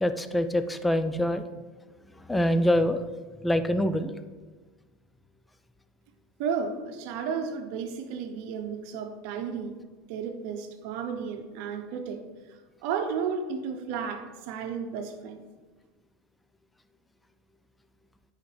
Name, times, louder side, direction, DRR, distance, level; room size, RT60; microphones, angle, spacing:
voice 1, 0.0-1.4 2.3-3.0 3.4-4.1, left 1 dB, 10° left, 10 dB, 0.4 m, -25 dB
voice 2, 6.4-9.7 10.1-12.2 12.8-15.4, right 6 dB, 65° right, 7 dB, 0.9 m, -33 dB
9.2 x 5.0 x 3.4 m, 1.3 s
supercardioid pair, 110°, 0 cm